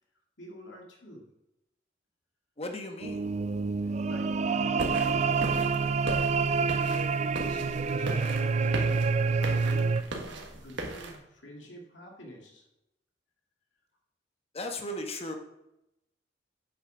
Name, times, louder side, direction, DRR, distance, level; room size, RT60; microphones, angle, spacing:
voice 1, 0.4-1.3 3.8-6.1 6.4-12.7, left 1 dB, 85° left, 0 dB, 2.2 m, -48 dB
voice 2, 2.6-3.2 14.5-15.3, left 1 dB, 35° left, 4 dB, 1.2 m, -36 dB
sound 1, 3.0-10.0, right 4 dB, 40° right, 0.4 m, -27 dB
sound 2, 4.8-11.1, right 2 dB, 80° right, 1.5 m, -38 dB
8.6 x 6.3 x 4.9 m, 0.87 s
head